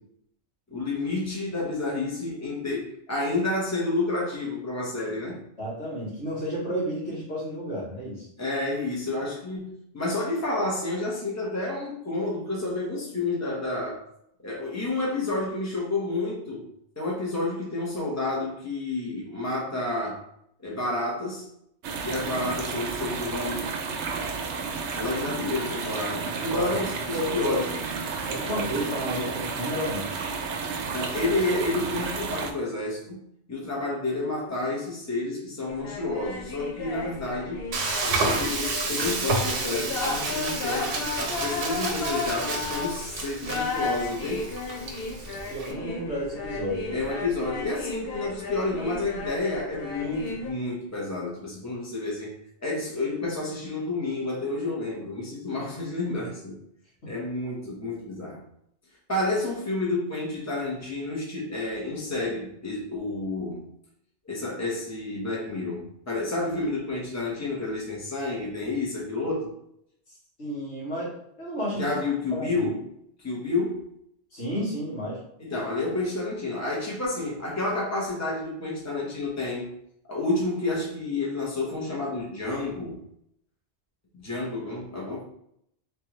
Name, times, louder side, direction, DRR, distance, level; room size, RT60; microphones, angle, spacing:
voice 1, 0.7-5.4 8.4-14.1 14.4-16.7 17.0-20.2 20.6-21.4 22.0-23.7 24.9-27.7 30.9-33.2 33.5-37.6 38.0-44.5 46.9-52.3 52.6-56.6 57.1-58.4 59.1-63.6 64.2-69.5 71.8-72.8 73.2-73.8 75.4-79.7 80.1-83.0 84.1-85.2, left 2 dB, 15° left, -4 dB, 1.0 m, -30 dB
voice 2, 5.6-8.3 26.5-26.8 27.1-27.6 28.3-30.1 45.5-46.9 57.0-57.1 70.4-71.1 71.4-71.9 72.3-72.7 74.3-75.2, equal, 85° left, -7 dB, 2.0 m, -31 dB
sound 1, 21.8-32.5, right 5 dB, 85° right, 0.9 m, -32 dB
sound 2, 35.7-50.5, left 3 dB, 60° left, 0.9 m, -34 dB
Frying (food), 37.7-45.7, right 3 dB, 60° right, 0.9 m, -30 dB
3.5 x 3.4 x 3.0 m, 0.71 s
omnidirectional pair, 1.2 m